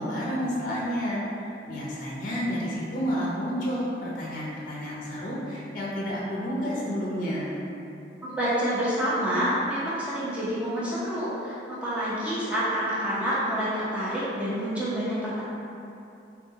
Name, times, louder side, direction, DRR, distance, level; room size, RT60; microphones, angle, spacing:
voice 1, 0.0-7.5, equal, 50° left, -6 dB, 0.5 m, -30 dB
voice 2, 8.2-15.4, equal, 5° right, -10 dB, 0.7 m, -28 dB
3.7 x 2.3 x 2.7 m, 2.8 s
head